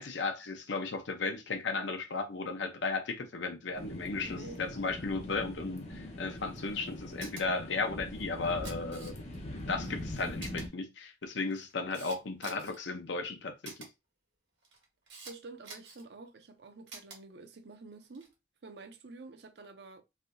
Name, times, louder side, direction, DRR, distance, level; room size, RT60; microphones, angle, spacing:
voice 1, 0.0-13.9, left 3 dB, 90° left, 0.7 m, -35 dB
sound 1, 3.7-10.7, left 1 dB, 35° left, 0.7 m, -42 dB
voice 2, 4.2-4.6 15.2-18.3 18.6-20.0, right 3 dB, 70° right, 0.6 m, -49 dB
Camera, 7.2-7.4 8.4-9.4 9.8-9.9 10.4-10.6 11.3-12.8 13.6-13.9 14.6-15.3 15.6-16.0 16.9-17.2 18.0-18.3, right 3 dB, 85° right, 1.4 m, -47 dB
3.3 x 2.7 x 2.6 m
head